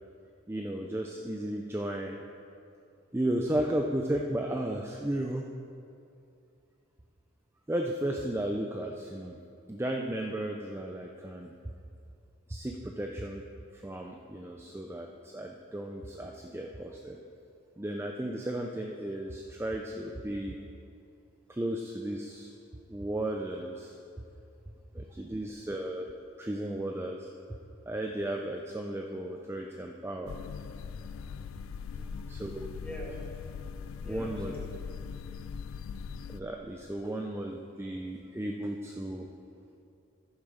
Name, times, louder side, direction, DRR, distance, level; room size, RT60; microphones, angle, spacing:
voice 1, 0.5-2.2 3.1-5.4 7.7-9.4 9.7-11.5 12.5-13.4 13.7-17.2 17.8-20.6 21.5-22.5 22.9-24.0 24.9-26.1 26.4-27.3 27.9-30.4 32.3-32.7 34.1-34.6 36.3-39.3, right 1 dB, 10° right, 1 dB, 0.4 m, -34 dB
sound 1, 30.3-36.4, left 6 dB, 75° left, 0.3 m, -40 dB
voice 2, 31.9-32.4 32.8-33.2 34.0-34.9, right 1 dB, 5° left, -4 dB, 1.5 m, -45 dB
11.5 x 7.2 x 5.0 m, 2.5 s
head